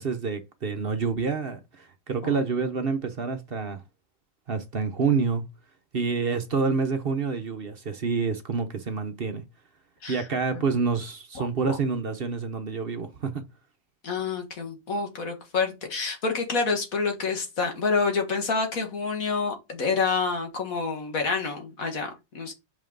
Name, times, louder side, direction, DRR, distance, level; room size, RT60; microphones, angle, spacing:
voice 1, 0.0-3.8 4.5-5.4 5.9-9.4 10.1-13.4, right 5 dB, 45° right, 1.0 m, -28 dB
voice 2, 14.0-22.5, left 4 dB, 75° left, 2.1 m, -28 dB
5.6 x 5.5 x 3.9 m
omnidirectional pair, 1.5 m